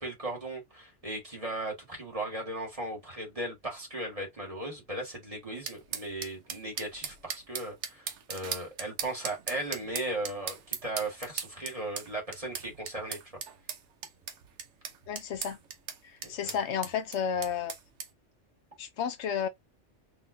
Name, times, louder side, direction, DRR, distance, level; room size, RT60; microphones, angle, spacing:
voice 1, 0.0-13.2 16.2-16.6, right 1 dB, 30° right, 2.1 m, -37 dB
sound 1, 5.7-18.1, right 7 dB, 80° right, 1.1 m, -39 dB
voice 2, 15.1-15.6 16.3-17.7 18.8-19.5, left 7 dB, 70° left, 1.0 m, -31 dB
3.8 x 3.2 x 2.7 m
omnidirectional pair, 1.2 m